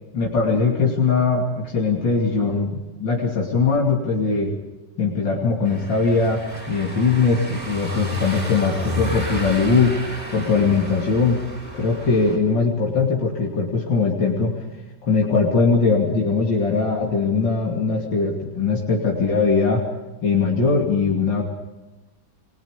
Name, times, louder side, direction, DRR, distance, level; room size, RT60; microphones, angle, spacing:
voice 1, 0.1-4.6 5.0-6.4 6.7-9.9 10.3-11.4 11.7-14.5 15.0-19.8 20.2-21.4, left 4 dB, 85° left, -2 dB, 3.7 m, -20 dB
Car passing by / Engine, 5.6-12.4, left 1 dB, 20° right, 4.2 m, -31 dB
30.0 x 22.0 x 5.2 m, 1.1 s
omnidirectional pair, 2.0 m